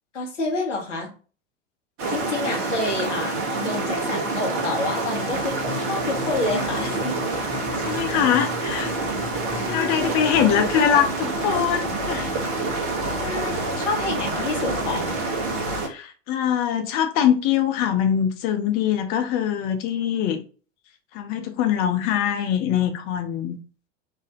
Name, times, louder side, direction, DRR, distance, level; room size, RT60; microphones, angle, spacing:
voice 1, 0.1-1.1 2.1-7.2 8.5-8.7 9.6-10.5 10.9-11.0 13.2-15.1, left 2 dB, 70° left, 1.5 m, -29 dB
sound 1, 2.0-15.9, right 3 dB, 35° right, 1.0 m, -27 dB
sound 2, 5.2-15.8, left 7 dB, 45° left, 0.8 m, -37 dB
voice 2, 7.8-8.9 9.7-12.3 15.8-20.4 21.1-23.6, left 9 dB, 25° left, 0.4 m, -23 dB
3.4 x 2.6 x 3.6 m
figure-of-eight pair, 85°, 38 cm